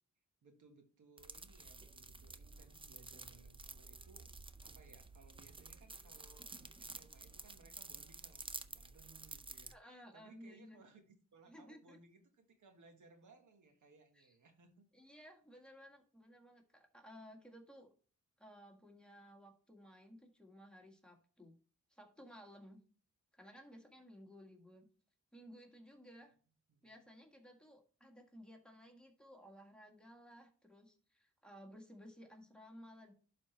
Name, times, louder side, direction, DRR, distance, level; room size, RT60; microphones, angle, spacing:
voice 1, 0.4-4.3 4.6-14.9 26.3-26.4 26.7-27.0, right 3 dB, 75° right, 5 dB, 1.5 m, -64 dB
sound 1, 1.2-9.7, right 3 dB, 15° right, 0.5 m, -52 dB
voice 2, 9.7-10.8 11.5-12.0 14.1-14.4 14.9-17.9 18.4-21.5 21.9-22.8 23.3-24.9 25.3-26.3 26.8-33.1, equal, 5° left, 1 dB, 1.7 m, -57 dB
11.5 x 4.1 x 3.2 m, 0.40 s
cardioid pair, 90°, 30 cm